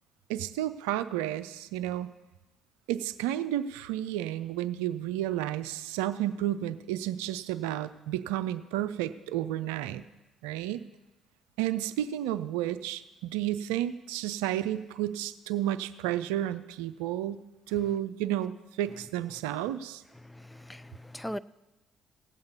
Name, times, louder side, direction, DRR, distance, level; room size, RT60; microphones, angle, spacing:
voice 1, 0.3-2.1 2.9-10.1 10.4-10.8 11.6-18.5 18.8-20.0, right 12 dB, 75° right, 12 dB, 0.4 m, -31 dB
voice 2, 20.2-21.4, equal, 10° left, 17 dB, 0.5 m, -40 dB
17.0 x 7.9 x 5.4 m, 1.0 s
hypercardioid pair, 50°, 0 cm